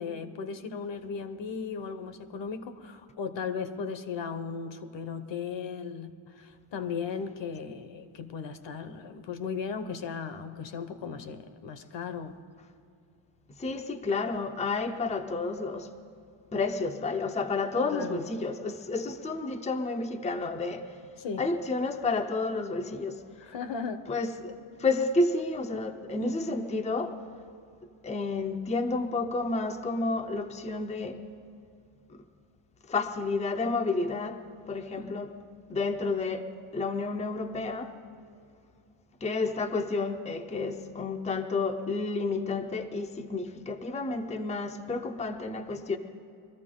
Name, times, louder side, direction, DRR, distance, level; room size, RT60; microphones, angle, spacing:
voice 1, 0.0-12.4 17.9-18.3 21.2-21.4 23.4-24.1 25.7-25.8 26.2-26.4 35.0-35.1, left 5 dB, 60° left, 9 dB, 1.0 m, -36 dB
voice 2, 13.6-15.9 16.5-20.8 21.4-23.2 24.1-27.1 28.0-31.2 32.9-34.4 34.7-35.3 35.7-36.5 36.7-37.9 39.2-46.0, left 3 dB, 15° left, 5 dB, 0.6 m, -30 dB
23.0 x 13.5 x 3.8 m, 2.5 s
cardioid pair, 135°, 49 cm